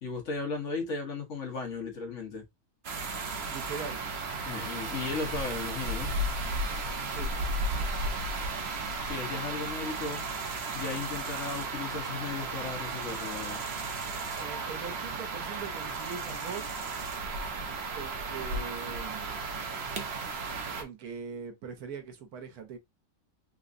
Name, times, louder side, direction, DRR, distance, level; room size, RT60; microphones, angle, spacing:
voice 1, 0.0-2.4 4.4-6.1 9.0-10.2 10.7-13.6, left 4 dB, 55° left, 1.2 m, -36 dB
sound 1, 2.8-20.8, right 3 dB, 50° right, 0.9 m, -34 dB
voice 2, 3.5-4.0 7.0-7.3 14.3-16.7 17.9-19.3 20.8-22.8, right 6 dB, 80° right, 1.3 m, -41 dB
3.5 x 3.0 x 2.5 m
omnidirectional pair, 1.6 m